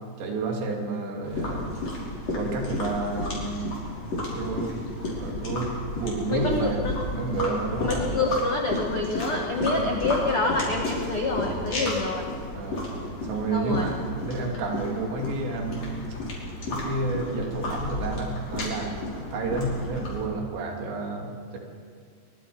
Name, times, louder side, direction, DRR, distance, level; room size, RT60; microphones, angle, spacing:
voice 1, 0.2-1.7 2.3-6.9 7.1-8.1 9.7-9.9 10.5-10.7 12.6-12.9 13.3-13.9 14.2-16.2 16.7-21.6, right 3 dB, 70° right, 1 dB, 4.8 m, -30 dB
sound 1, 1.2-20.2, left 2 dB, 35° left, 5.9 m, -32 dB
voice 2, 6.3-6.9 7.8-12.2 13.5-13.9, left 2 dB, 90° left, 1 dB, 1.2 m, -27 dB
24.5 x 23.5 x 5.4 m, 2.1 s
omnidirectional pair, 5.3 m